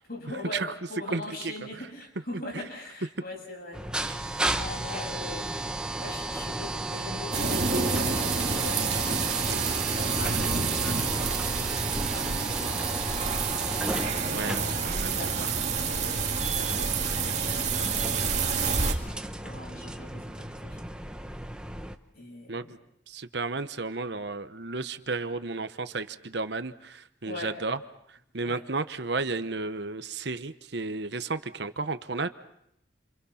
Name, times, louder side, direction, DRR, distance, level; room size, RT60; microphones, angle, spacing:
voice 1, 0.1-11.6 12.1-12.8 14.2-20.8 22.2-22.7 27.2-27.6 28.4-28.6, left 2 dB, 50° left, 2 dB, 7.2 m, -42 dB
voice 2, 1.1-1.5 2.5-2.6 4.0-4.2 14.3-14.6 14.8-15.5 22.5-22.8 23.1-27.8 28.3-32.3, right 3 dB, 60° right, 11 dB, 1.0 m, -33 dB
sound 1, 3.7-22.0, right 1 dB, 5° right, 1.0 m, -34 dB
sound 2, 7.3-18.9, right 5 dB, 35° right, 2.4 m, -28 dB
29.0 x 27.5 x 5.8 m, 0.78 s
head